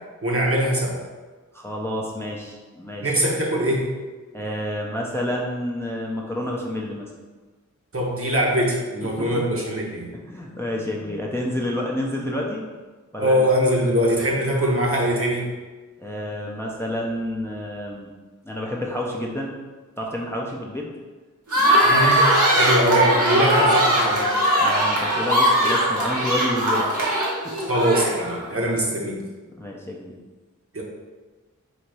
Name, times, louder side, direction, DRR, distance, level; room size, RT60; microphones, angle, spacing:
voice 1, 0.2-1.0 3.0-3.9 7.9-10.1 13.2-15.5 21.8-24.3 27.7-29.2 30.7-30.8, equal, 45° right, -2 dB, 0.9 m, -22 dB
voice 2, 1.5-3.1 4.3-7.1 9.2-9.3 10.1-12.6 13.1-13.4 16.0-18.1 18.4-19.6 20.0-20.9 24.6-26.9 29.6-30.1, left 1 dB, 10° left, -2 dB, 0.5 m, -29 dB
sound 1, 21.5-28.4, right 1 dB, 70° right, 1.4 m, -20 dB
4.0 x 2.8 x 4.7 m, 1.3 s
wide cardioid pair, 85°, 31 cm